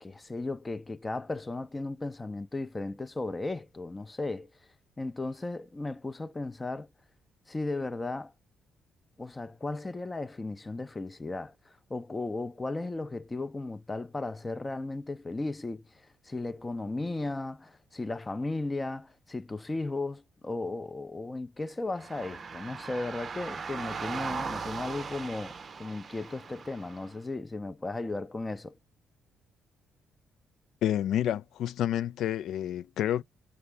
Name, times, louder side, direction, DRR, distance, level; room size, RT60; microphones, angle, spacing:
voice 1, 0.0-4.5 5.0-6.9 7.5-8.3 9.2-28.8, left 2 dB, 20° left, 0.5 m, -35 dB
sound 1, 22.0-27.1, right 5 dB, 40° right, 0.6 m, -39 dB
voice 2, 30.8-33.2, left 11 dB, 80° left, 0.3 m, -29 dB
5.9 x 2.0 x 3.2 m
cardioid pair, 90°, 0 cm